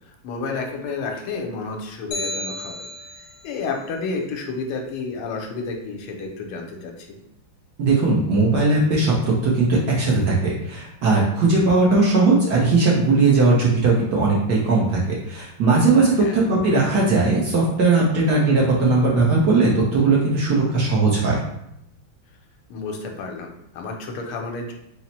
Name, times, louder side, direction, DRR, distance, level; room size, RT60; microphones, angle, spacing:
voice 1, 0.1-2.7 3.2-7.2 16.2-16.4 22.7-24.7, left 4 dB, 85° left, 2 dB, 1.5 m, -31 dB
sound 1, 2.1-3.5, left 1 dB, 45° left, 0.8 m, -32 dB
voice 2, 7.8-9.1 9.4-21.4, right 3 dB, 65° right, -4 dB, 1.1 m, -18 dB
4.3 x 2.0 x 4.0 m, 0.80 s
omnidirectional pair, 2.4 m